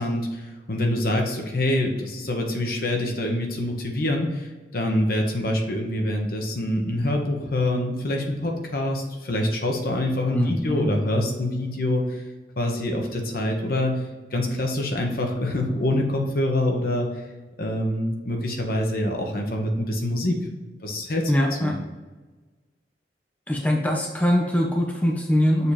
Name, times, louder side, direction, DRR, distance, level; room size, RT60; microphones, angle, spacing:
voice 1, 0.0-12.2 12.6-14.0 14.3-17.1 17.6-20.4 20.8-21.3 21.6-21.7, left 1 dB, 55° left, 1 dB, 1.0 m, -25 dB
voice 2, 10.3-10.9 21.3-21.8 23.5-25.7, equal, 10° left, 0 dB, 0.6 m, -22 dB
6.9 x 2.9 x 4.9 m, 1.3 s
head